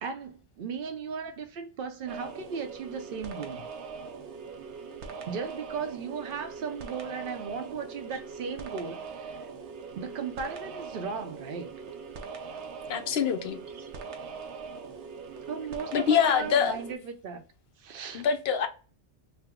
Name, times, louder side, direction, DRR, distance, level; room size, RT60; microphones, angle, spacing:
voice 1, 0.0-3.7 5.3-9.4 10.0-11.7 13.7-13.9 15.5-17.4 17.8-18.3, right 5 dB, 60° right, 0.7 m, -36 dB
sound 1, 2.1-17.0, right 5 dB, 90° right, 0.9 m, -41 dB
voice 2, 12.9-13.6 15.9-16.8 18.1-18.7, left 7 dB, 65° left, 0.8 m, -25 dB
3.3 x 2.1 x 3.4 m
omnidirectional pair, 1.1 m